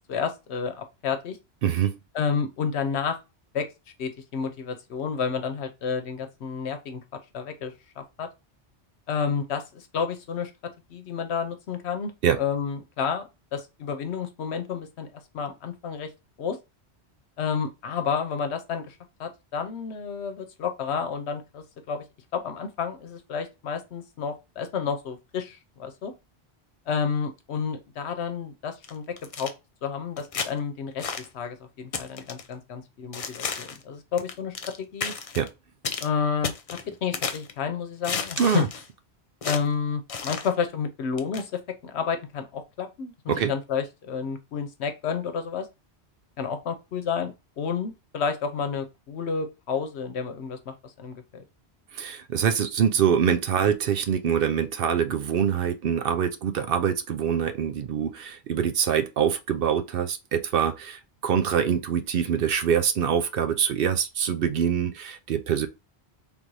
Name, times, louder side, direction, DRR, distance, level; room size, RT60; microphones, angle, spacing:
voice 1, 0.1-1.4 2.1-3.2 3.5-3.7 4.0-7.0 7.3-8.3 9.1-10.5 10.9-12.1 12.4-13.2 13.5-15.1 15.3-16.1 16.4-16.6 17.4-22.0 22.3-26.1 26.9-29.1 29.4-29.5 29.8-31.1 31.3-35.1 36.0-38.6 39.4-45.7 46.4-51.4, left 6 dB, 80° left, 1.0 m, -30 dB
voice 2, 1.6-2.0 12.2-12.4 35.3-35.5 38.4-38.7 43.3-43.5 51.9-65.7, right 8 dB, 65° right, 0.7 m, -24 dB
sound 1, 28.8-29.5 30.2-30.5 31.0-31.3 31.9-32.5 33.1-33.8 34.2-34.8 35.0-35.5 35.8-36.1 36.4-37.5 38.0-38.9 39.4-39.6 40.1-40.5 41.2-41.4, left 5 dB, 45° left, 0.5 m, -32 dB
3.5 x 2.6 x 4.6 m
omnidirectional pair, 1.1 m